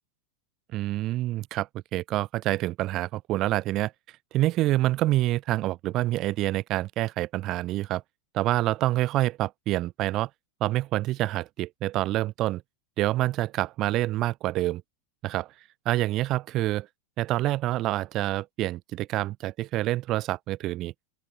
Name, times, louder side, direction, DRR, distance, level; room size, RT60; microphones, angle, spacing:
voice 1, 0.7-3.9 4.3-8.0 8.3-10.3 10.6-12.6 13.0-14.8 15.2-15.5 15.9-16.9 17.2-20.9, right 16 dB, 35° right, 0.4 m, -27 dB
open air
figure-of-eight pair, 90°, 0 cm